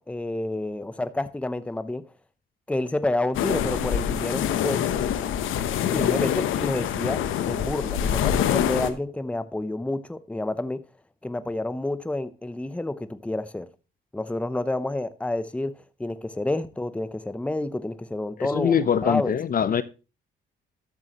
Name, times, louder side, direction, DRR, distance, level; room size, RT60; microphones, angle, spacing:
voice 1, 0.0-2.0 2.7-5.0 5.9-10.8 11.2-13.7 14.1-18.7 19.0-19.3, left 2 dB, 5° left, 0.7 m, -29 dB
sound 1, 3.3-8.9, left 9 dB, 85° left, 1.0 m, -25 dB
voice 2, 18.4-19.8, left 8 dB, 45° left, 0.8 m, -23 dB
13.0 x 8.3 x 3.0 m
cardioid pair, 90°, 20 cm